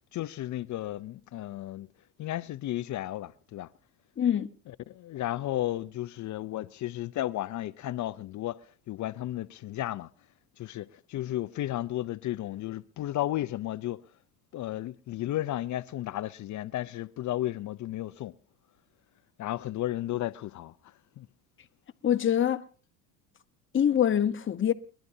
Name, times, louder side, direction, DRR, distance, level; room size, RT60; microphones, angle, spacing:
voice 1, 0.1-1.9 2.2-3.7 4.9-8.6 8.9-10.1 10.6-14.0 14.5-18.3 19.4-20.7 21.2-21.3, left 14 dB, 45° left, 0.6 m, -33 dB
voice 2, 4.2-4.5 22.0-22.7 23.7-24.7, left 9 dB, 30° left, 1.0 m, -24 dB
29.5 x 11.5 x 2.7 m
supercardioid pair, 90°, 43 cm